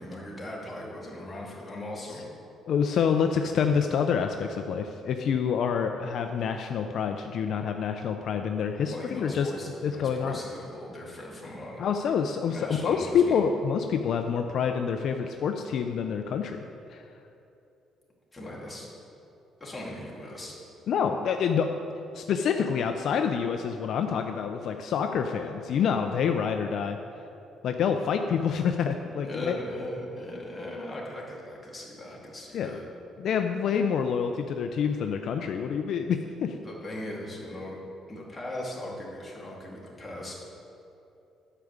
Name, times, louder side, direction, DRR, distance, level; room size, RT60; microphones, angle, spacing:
voice 1, 0.0-2.3 8.9-11.9 12.5-13.4 18.3-18.9 19.6-20.6 29.2-32.9 36.6-37.8 38.1-40.4, left 1 dB, 15° left, -4 dB, 2.2 m, -39 dB
voice 2, 2.7-9.5 9.8-10.4 11.8-16.6 16.9-17.1 20.9-21.7 22.1-27.0 27.6-29.6 32.5-32.8 33.2-36.6, left 7 dB, 60° left, 6 dB, 0.5 m, -27 dB
9.9 x 5.0 x 7.1 m, 2.8 s
cardioid pair, 115°, 0 cm